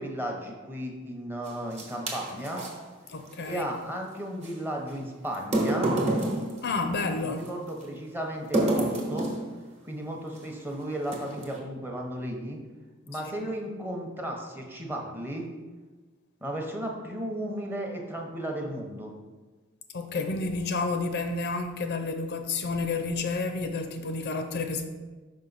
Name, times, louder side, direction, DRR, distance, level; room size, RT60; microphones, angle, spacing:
voice 1, 0.0-2.7 3.5-5.9 7.2-9.3 9.8-12.6 13.1-15.5 16.4-19.1, right 1 dB, 10° right, 0.8 m, -34 dB
sound 1, 1.5-2.7 4.4-4.5 5.3-7.5 8.5-9.5 10.3-10.5 11.0-11.6, right 1 dB, 35° right, 1.1 m, -28 dB
voice 2, 3.1-3.7 6.6-7.4 13.4-13.5 19.9-24.9, left 3 dB, 55° left, 0.5 m, -30 dB
5.5 x 5.2 x 4.0 m
head